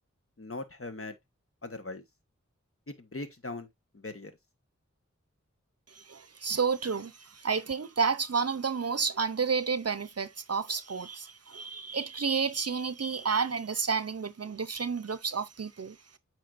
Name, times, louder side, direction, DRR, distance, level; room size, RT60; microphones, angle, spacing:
voice 1, 0.4-1.1 1.6-2.0 2.9-3.7 3.9-4.3, left 2 dB, 50° left, 1.3 m, -40 dB
voice 2, 5.9-16.2, right 5 dB, 55° right, 0.6 m, -31 dB
8.6 x 4.7 x 2.5 m
wide cardioid pair, 45°, 29 cm